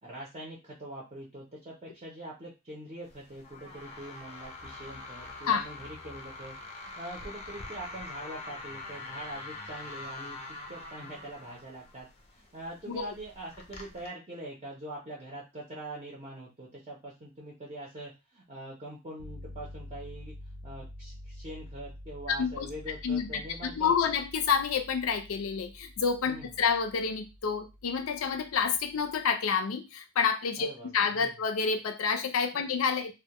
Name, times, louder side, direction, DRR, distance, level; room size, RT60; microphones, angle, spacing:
voice 1, 0.0-6.6 6.8-10.4 10.7-12.1 12.3-20.3 20.6-23.9 26.3-26.6 30.6-31.3 32.5-32.7, right 1 dB, 30° right, -4 dB, 0.5 m, -43 dB
sound 1, 3.0-14.1, left 2 dB, 30° left, 0.4 m, -44 dB
sound 2, 19.2-29.3, left 1 dB, 80° right, 0.6 m, -48 dB
voice 2, 23.0-30.7 30.9-33.1, left 6 dB, 85° left, 7 dB, 0.4 m, -29 dB
2.1 x 2.1 x 2.8 m, 0.26 s
head